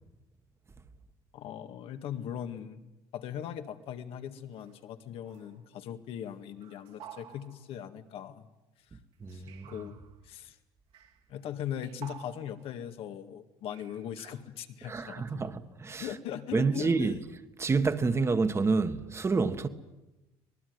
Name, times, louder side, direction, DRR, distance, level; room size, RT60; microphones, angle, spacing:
voice 1, 1.3-8.4 8.9-9.0 9.3-10.0 10.2-10.6 11.3-15.5 16.0-17.2, left 9 dB, 65° left, 2.0 m, -40 dB
sound 1, 4.5-5.0 5.2-5.7 6.6-7.8 9.3-10.2 10.9-11.2 11.6-12.8 13.7-14.3, right 9 dB, 70° right, 3.2 m, -52 dB
voice 2, 9.2-9.7 14.8-16.1 16.5-17.2 17.6-19.7, right 4 dB, 25° right, 1.7 m, -28 dB
25.5 x 19.5 x 9.6 m
cardioid pair, 100°, 10 cm